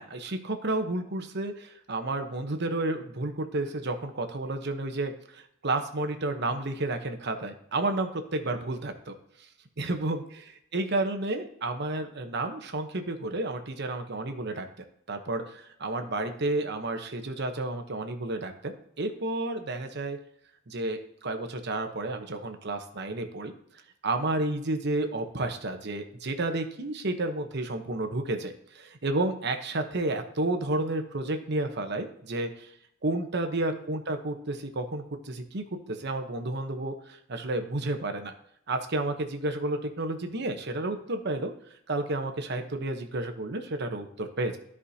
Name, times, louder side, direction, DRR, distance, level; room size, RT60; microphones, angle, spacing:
voice 1, 0.0-9.1 9.8-14.7 15.1-20.2 20.7-23.5 24.0-32.7 33.0-38.3 38.7-41.5 41.9-44.6, right 2 dB, 55° right, 6 dB, 1.0 m, -31 dB
13.5 x 4.9 x 2.8 m, 0.73 s
head